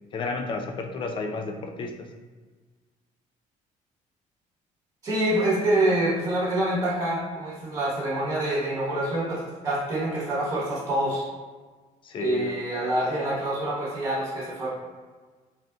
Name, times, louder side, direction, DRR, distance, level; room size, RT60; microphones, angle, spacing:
voice 1, 0.1-2.1 12.0-12.6, left 4 dB, 35° left, 4 dB, 0.4 m, -32 dB
voice 2, 5.0-11.2 12.2-14.7, right 1 dB, 25° right, -7 dB, 1.2 m, -26 dB
3.5 x 2.5 x 2.3 m, 1.4 s
cardioid pair, 125°, 14 cm